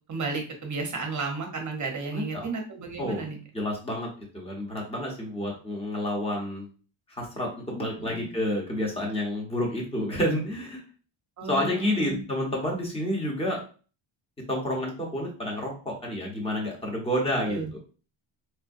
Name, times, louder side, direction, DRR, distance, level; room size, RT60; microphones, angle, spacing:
voice 1, 0.1-3.4 8.0-8.3 11.4-12.2 17.5-17.7, right 4 dB, 35° right, 2 dB, 0.8 m, -33 dB
voice 2, 2.1-2.5 3.0-3.2 3.5-4.1 4.3-6.7 7.1-10.8 11.5-13.6 14.5-17.6, left 1 dB, 10° left, -1 dB, 0.9 m, -29 dB
4.5 x 2.1 x 2.5 m, 0.38 s
wide cardioid pair, 155°, 49 cm